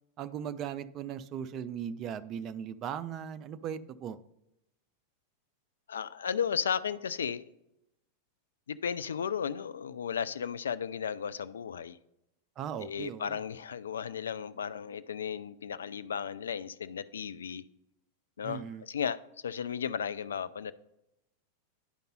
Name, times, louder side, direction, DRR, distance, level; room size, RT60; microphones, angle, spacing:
voice 1, 0.2-4.2 12.6-13.4 18.4-18.8, right 8 dB, 35° right, 12 dB, 0.4 m, -38 dB
voice 2, 5.9-7.4 8.7-12.0 12.8-17.6 18.4-20.7, left 7 dB, 65° left, 14 dB, 0.3 m, -35 dB
10.0 x 5.2 x 4.1 m, 0.86 s
figure-of-eight pair, 90°, 0 cm